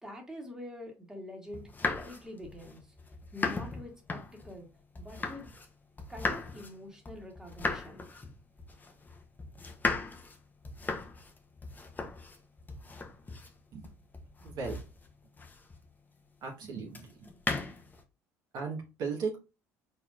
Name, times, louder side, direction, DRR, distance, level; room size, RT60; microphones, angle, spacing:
voice 1, 0.0-2.8 3.3-4.7 5.0-5.5 6.1-8.0, left 1 dB, 5° right, 1 dB, 1.9 m, -45 dB
sound 1, 1.5-5.7 6.0-15.9 16.9-18.0, left 3 dB, 20° left, 1.0 m, -37 dB
voice 2, 14.4-14.8 16.4-17.3 18.5-19.4, right 5 dB, 60° right, 0 dB, 1.4 m, -37 dB
4.3 x 4.1 x 2.6 m, 0.29 s
hypercardioid pair, 65°, 8 cm